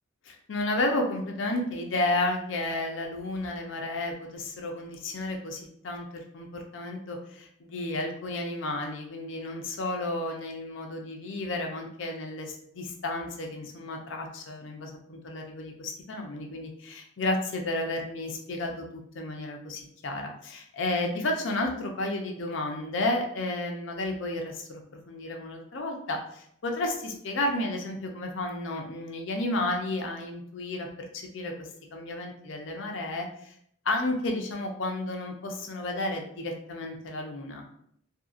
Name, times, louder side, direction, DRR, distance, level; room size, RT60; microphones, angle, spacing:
voice 1, 0.3-6.5 6.7-24.8 25.1-30.9 31.1-33.5 33.8-37.7, left 2 dB, 65° left, 2 dB, 0.5 m, -32 dB
2.7 x 2.7 x 2.4 m, 0.68 s
head